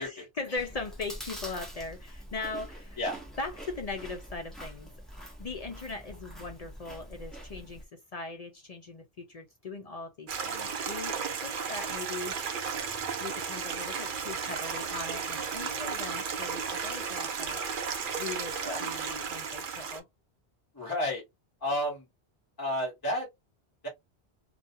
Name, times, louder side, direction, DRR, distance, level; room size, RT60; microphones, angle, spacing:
voice 1, 0.0-3.0 3.4-4.9 5.4-12.4 13.2-17.7 18.2-20.1, left 3 dB, 50° left, 0.5 m, -39 dB
Chewing mastication, 0.5-7.8, equal, ahead, 0.6 m, -45 dB
Stream, 10.3-20.0, right 6 dB, 60° right, 0.7 m, -34 dB
voice 2, 20.7-21.2 21.6-22.0 22.6-23.3 23.8-23.9, left 1 dB, 20° left, 1.1 m, -31 dB
2.5 x 2.2 x 2.6 m
omnidirectional pair, 1.1 m